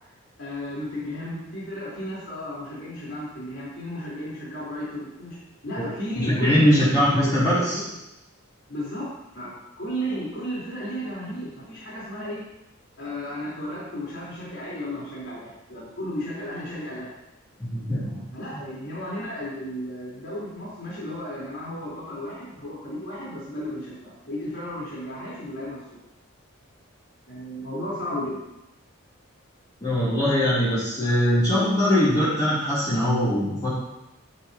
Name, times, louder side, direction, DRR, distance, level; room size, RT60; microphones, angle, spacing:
voice 1, 0.4-7.9 8.7-12.4 13.0-17.1 17.9-26.0 27.3-28.4, equal, 60° left, -8 dB, 4.4 m, -34 dB
voice 2, 6.2-7.8 17.6-18.2 29.8-33.7, equal, 20° left, -12 dB, 3.5 m, -21 dB
13.0 x 9.8 x 3.1 m, 0.92 s
head